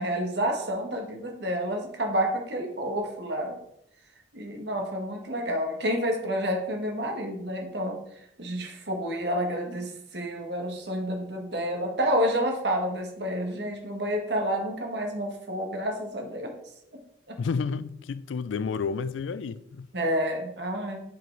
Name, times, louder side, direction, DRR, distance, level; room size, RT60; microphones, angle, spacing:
voice 1, 0.0-3.6 4.3-8.0 8.4-16.5 17.3-17.4 19.9-21.0, equal, 60° right, 1.4 m, -29 dB
voice 2, 17.4-19.9, left 5 dB, 75° left, 0.4 m, -30 dB
7.6 x 4.7 x 3.8 m
head